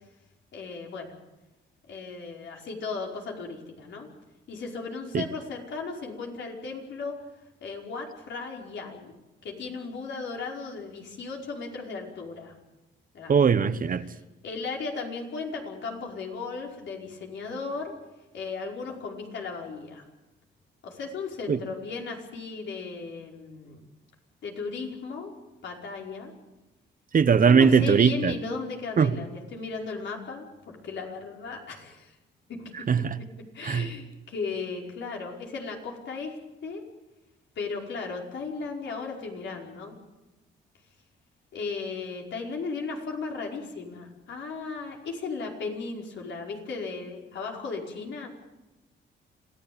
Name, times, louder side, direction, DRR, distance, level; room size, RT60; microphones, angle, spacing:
voice 1, 0.5-1.1 1.9-4.1 4.5-7.2 7.6-9.1 9.4-12.5 13.1-13.4 14.4-18.0 18.3-20.0 20.8-23.8 24.4-25.3 25.6-26.3 27.5-32.1 32.5-32.7 33.5-36.4 36.6-36.8 37.5-39.9 41.5-48.3, left 4 dB, 65° left, 5.2 m, -36 dB
voice 2, 13.3-14.0 21.5-21.6 27.1-28.3 29.0-29.1 32.9-33.2 33.6-33.9, right 6 dB, 45° right, 1.2 m, -20 dB
27.0 x 16.5 x 8.8 m
cardioid pair, 90°, 20 cm